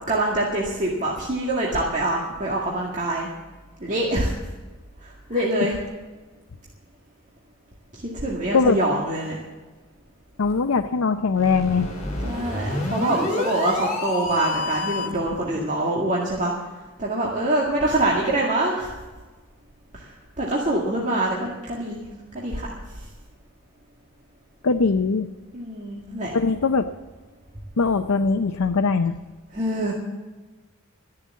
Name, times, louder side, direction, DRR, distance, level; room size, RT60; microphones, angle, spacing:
voice 1, 0.1-3.3 3.8-4.3 5.0-5.8 7.9-9.4 12.2-16.5 17.0-19.0 19.9-20.1 20.4-22.0 22.3-22.7 25.5-26.3 29.5-29.9, right 1 dB, 35° right, -3 dB, 2.0 m, -25 dB
voice 2, 10.4-11.9 24.6-25.3 26.3-26.8 27.8-29.1, left 4 dB, 80° left, 7 dB, 0.6 m, -21 dB
sound 1, 11.3-15.3, left 2 dB, 35° left, 3.8 m, -28 dB
13.5 x 10.5 x 7.4 m, 1.3 s
head